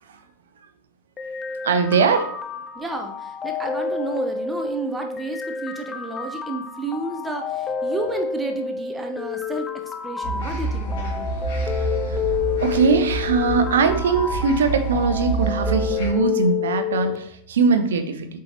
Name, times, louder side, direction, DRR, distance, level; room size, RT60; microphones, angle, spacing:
sound 1, 1.2-17.2, left 6 dB, 20° left, 0.5 m, -29 dB
voice 1, 1.6-2.3 11.7-12.2 12.6-18.4, right 5 dB, 60° right, 8 dB, 0.7 m, -21 dB
voice 2, 2.7-11.3, right 3 dB, 10° right, 4 dB, 0.8 m, -31 dB
sound 2, 10.2-16.1, right 3 dB, 55° left, 2.1 m, -28 dB
7.7 x 4.8 x 2.9 m, 0.71 s
figure-of-eight pair, 90°, 0 cm